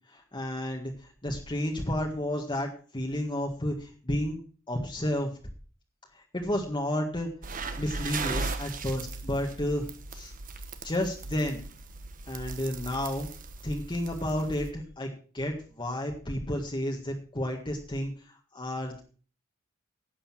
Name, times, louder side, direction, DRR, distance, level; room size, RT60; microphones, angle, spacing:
voice 1, 0.1-4.4 4.7-5.3 6.1-7.3 7.8-10.3 10.8-11.6 12.3-13.3 13.6-19.0, left 1 dB, 25° left, 1 dB, 1.7 m, -31 dB
sound 1, 7.4-14.7, right 3 dB, 40° right, 1.2 m, -38 dB
11.5 x 8.5 x 6.1 m, 0.40 s
head